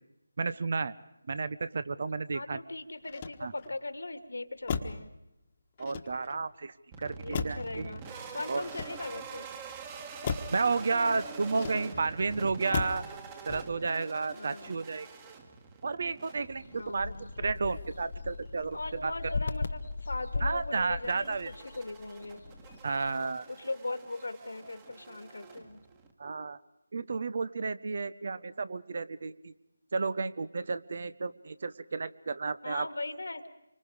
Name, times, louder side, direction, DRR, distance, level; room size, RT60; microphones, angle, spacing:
voice 1, 0.4-0.9 1.3-2.6 3.4-3.5 5.8-6.7 7.0-7.9 8.5-8.6 10.5-13.0 13.5-15.1 15.8-17.1 17.4-19.1 20.4-21.5 22.8-23.4 26.2-26.6 26.9-29.5 29.9-32.9, right 4 dB, 50° right, 15 dB, 0.9 m, -32 dB
voice 2, 2.3-5.1 7.2-8.0 8.3-9.5 14.3-14.8 16.7-17.3 18.7-22.4 23.5-25.8 32.6-33.5, left 2 dB, 75° left, 10 dB, 2.0 m, -39 dB
Motor vehicle (road), 3.0-3.8 4.6-5.1 5.8-6.5 7.3-7.8 8.6-9.3 10.2-10.6 11.5-12.1 12.7-13.1 13.5-13.9, left 5 dB, 30° left, 1.4 m, -36 dB
sound 1, 6.9-26.1, right 5 dB, 20° right, 1.7 m, -46 dB
sound 2, 16.4-23.1, left 4 dB, 55° left, 1.0 m, -38 dB
26.5 x 25.0 x 5.0 m, 0.87 s
figure-of-eight pair, 160°, 0 cm